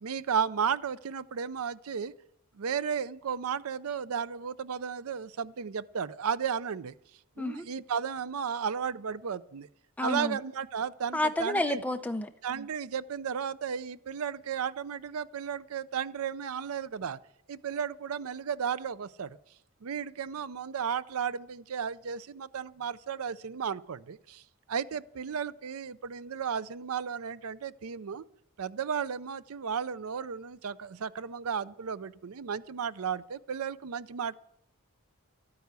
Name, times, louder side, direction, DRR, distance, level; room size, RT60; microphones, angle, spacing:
voice 1, 0.0-2.1 2.6-6.9 7.4-9.7 10.0-11.8 12.4-17.2 17.5-19.4 19.8-24.4 24.7-28.2 28.6-34.3, right 7 dB, 80° right, 17 dB, 0.5 m, -34 dB
voice 2, 10.0-10.4 11.1-12.3, left 1 dB, 5° left, 7 dB, 0.6 m, -30 dB
13.0 x 9.5 x 8.1 m, 0.76 s
head